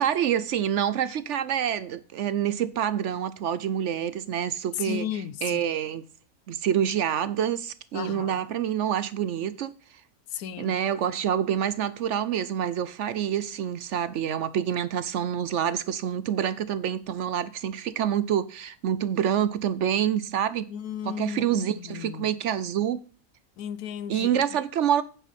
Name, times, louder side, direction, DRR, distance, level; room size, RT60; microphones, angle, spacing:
voice 1, 0.0-5.1 5.4-6.0 6.5-10.0 10.6-20.7 21.0-23.0 24.1-25.0, right 9 dB, 65° right, 0.8 m, -27 dB
voice 2, 4.8-5.6 7.9-8.4 10.3-10.8 20.7-22.3 23.6-24.4, left 9 dB, 90° left, 1.2 m, -35 dB
9.0 x 7.9 x 4.1 m
omnidirectional pair, 1.6 m